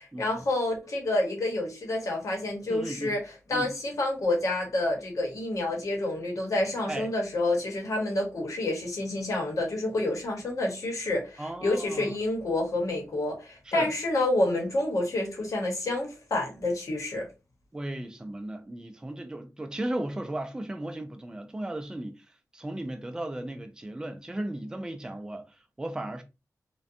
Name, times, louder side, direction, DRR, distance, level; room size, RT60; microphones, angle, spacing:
voice 1, 0.2-3.2 3.5-17.3, left 2 dB, 65° left, 0.9 m, -28 dB
voice 2, 2.7-3.2 3.5-3.7 6.9-7.1 11.4-12.2 13.7-13.9 17.7-22.2 22.5-26.2, right 1 dB, 10° right, 0.3 m, -36 dB
2.6 x 2.2 x 2.4 m
wide cardioid pair, 135°, 6 cm